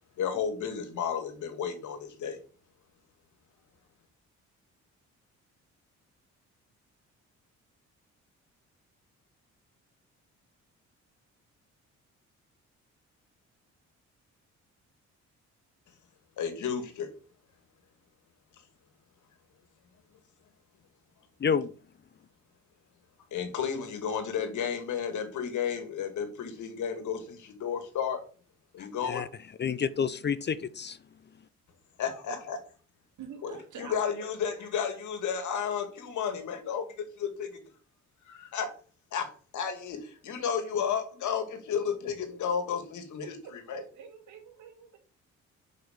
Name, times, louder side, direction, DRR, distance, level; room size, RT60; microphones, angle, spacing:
voice 1, 0.2-2.4 16.4-17.1 23.3-28.2 28.7-29.3 32.0-32.6 33.4-37.5 38.3-38.7 39.1-43.8, left 7 dB, 75° left, 2.2 m, -32 dB
voice 2, 21.4-21.7 28.8-29.3 29.6-31.0, left 6 dB, 35° left, 0.6 m, -29 dB
voice 3, 33.2-34.3 43.2-45.0, right 7 dB, 75° right, 2.5 m, -46 dB
5.7 x 5.5 x 6.6 m
cardioid pair, 90°, 30 cm